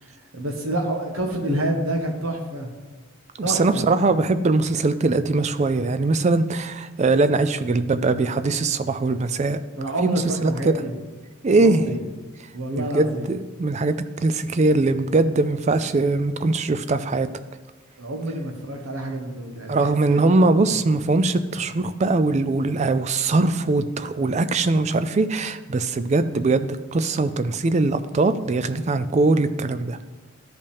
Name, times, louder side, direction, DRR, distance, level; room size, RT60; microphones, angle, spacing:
voice 1, 0.3-2.7 3.4-3.9 9.8-10.9 11.6-12.0 12.5-13.3 18.0-20.2 20.6-20.7, right 1 dB, 65° right, 2 dB, 1.3 m, -28 dB
voice 2, 3.4-9.6 10.0-10.8 11.4-11.8 12.8-17.3 19.7-30.0, right 3 dB, 30° right, 11 dB, 0.3 m, -21 dB
13.0 x 5.4 x 3.5 m, 1.3 s
head